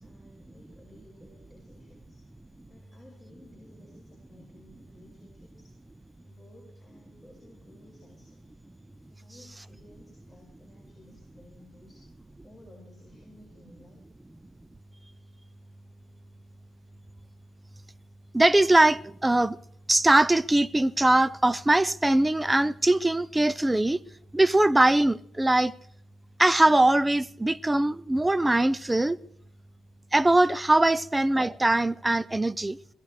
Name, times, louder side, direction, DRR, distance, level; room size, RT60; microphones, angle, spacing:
voice 1, 0.0-2.2 2.7-5.7 6.2-8.4 9.1-14.0, left 1 dB, 5° left, 5.2 m, -56 dB
voice 2, 18.3-19.6 19.9-24.0 24.3-25.7 26.4-29.2 30.1-32.8, right 2 dB, 15° right, 0.5 m, -21 dB
22.0 x 15.5 x 3.2 m
cardioid pair, 90°, 0 cm